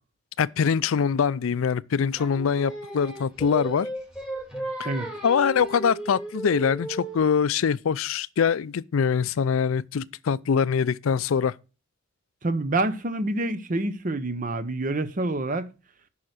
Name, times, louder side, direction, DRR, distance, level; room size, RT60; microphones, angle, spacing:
voice 1, 0.4-3.9 5.2-11.5, left 6 dB, 85° left, 0.4 m, -23 dB
Singing, 2.2-7.4, right 1 dB, 5° right, 2.4 m, -35 dB
voice 2, 12.4-15.7, right 2 dB, 40° right, 0.8 m, -27 dB
8.6 x 5.7 x 6.4 m
head